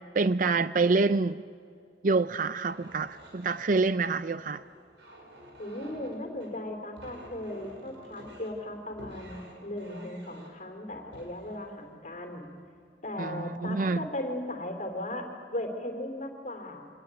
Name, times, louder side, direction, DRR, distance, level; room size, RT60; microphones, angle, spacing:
voice 1, 0.1-1.4 2.0-4.6 13.2-14.1, right 3 dB, 50° right, 14 dB, 0.5 m, -26 dB
sound 1, 2.6-12.9 13.6-13.8 14.2-14.7, equal, 85° right, 5.8 m, -50 dB
voice 2, 5.6-12.4 13.0-16.9, left 1 dB, 45° left, 4 dB, 3.5 m, -37 dB
25.0 x 19.5 x 9.0 m, 2.2 s
head